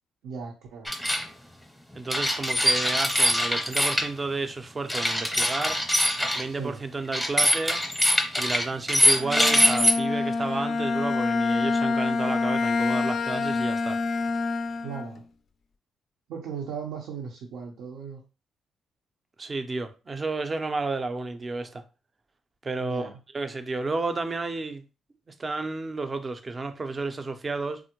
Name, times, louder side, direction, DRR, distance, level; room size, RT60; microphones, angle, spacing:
voice 1, 0.2-0.9 6.5-6.8 14.8-15.2 16.3-18.2 22.8-23.2, right 6 dB, 80° right, 0.6 m, -37 dB
sound 1, 0.9-1.2 2.1-4.1 4.9-6.4 7.1-9.9, equal, ahead, 0.7 m, -23 dB
voice 2, 1.9-5.8 6.3-7.8 8.4-14.0 19.4-21.8 22.6-23.1 23.3-24.8 25.3-27.8, right 3 dB, 30° right, 0.5 m, -31 dB
Bowed string instrument, 9.1-15.2, left 4 dB, 50° left, 0.3 m, -26 dB
3.5 x 2.1 x 2.9 m
cardioid pair, 90°, 0 cm